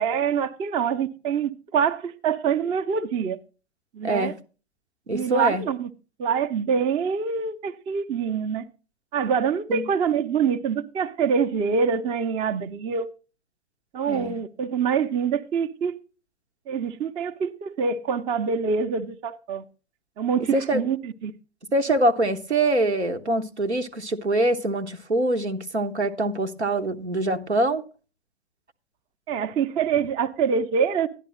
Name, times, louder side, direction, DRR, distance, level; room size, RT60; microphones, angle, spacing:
voice 1, 0.0-3.4 3.9-4.3 5.1-5.9 6.2-8.7 9.1-13.1 13.9-16.0 16.7-19.6 20.2-21.3 29.3-31.1, right 6 dB, 15° right, 0.4 m, -25 dB
voice 2, 4.0-4.3 5.1-5.6 9.7-9.8 14.1-14.4 20.5-20.8 21.7-27.8, right 1 dB, 90° right, 1.0 m, -24 dB
11.5 x 10.5 x 3.0 m
figure-of-eight pair, 110°, 33 cm